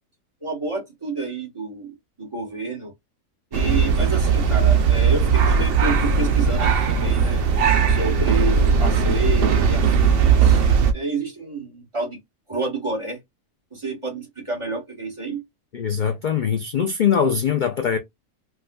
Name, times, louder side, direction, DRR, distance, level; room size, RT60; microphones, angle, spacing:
voice 1, 0.4-2.9 3.5-7.4 7.9-10.6 10.9-12.2 12.5-13.2 13.7-15.4, right 3 dB, 20° right, 1.3 m, -29 dB
sound 1, 3.5-10.9, right 6 dB, 55° right, 0.7 m, -18 dB
voice 2, 15.7-18.0, left 7 dB, 65° left, 0.4 m, -22 dB
4.7 x 2.3 x 2.2 m
omnidirectional pair, 1.5 m